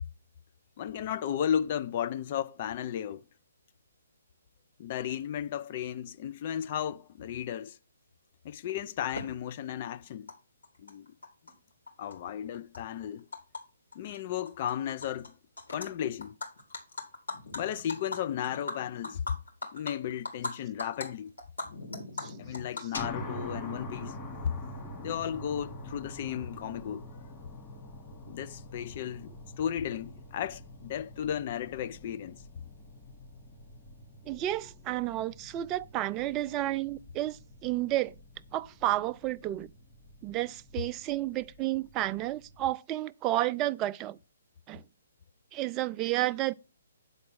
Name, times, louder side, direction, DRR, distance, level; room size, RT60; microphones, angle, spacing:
voice 1, 0.8-3.2 4.8-7.8 8.4-10.3 10.8-11.1 12.0-13.2 13.9-15.3 15.7-16.3 17.5-19.2 19.7-21.3 22.4-24.2 25.0-27.0 28.3-32.4, left 9 dB, 40° left, 0.6 m, -34 dB
Animal, 9.2-9.3 10.3-10.4 10.6-11.5 11.9-13.6 13.9-14.2 14.5-15.3 15.6-15.9 16.2-20.5 20.8-21.1 21.4-23.5, left 3 dB, 80° left, 3.5 m, -39 dB
sound 1, 22.9-42.7, left 1 dB, 25° left, 2.6 m, -46 dB
voice 2, 34.3-38.1 38.5-39.7 40.2-44.2 44.7-44.8 45.5-46.5, right 15 dB, 25° right, 0.3 m, -31 dB
9.5 x 4.1 x 6.2 m
figure-of-eight pair, 135°, 0 cm